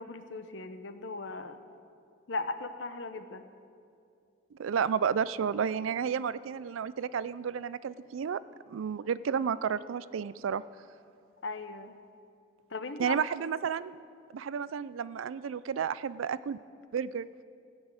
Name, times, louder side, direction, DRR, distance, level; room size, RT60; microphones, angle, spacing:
voice 1, 0.0-1.6 2.3-3.4 11.4-12.0 12.7-13.1, left 3 dB, 65° left, 9 dB, 0.7 m, -38 dB
voice 2, 4.5-8.4 8.7-10.6 13.0-14.0 14.3-16.6 16.9-17.3, right 7 dB, 90° right, 17 dB, 0.4 m, -31 dB
15.0 x 6.2 x 8.8 m, 2.4 s
head